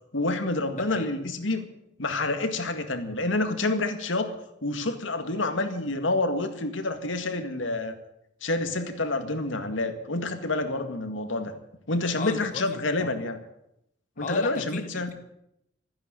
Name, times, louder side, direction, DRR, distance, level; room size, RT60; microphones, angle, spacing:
voice 1, 0.1-1.7 2.0-7.9 8.4-11.5 11.9-13.4 14.2-15.1, left 2 dB, 75° left, 7 dB, 2.0 m, -28 dB
voice 2, 0.7-1.1 12.2-13.1 14.2-15.1, left 4 dB, 40° left, 8 dB, 0.7 m, -36 dB
14.0 x 10.0 x 9.1 m, 0.80 s
head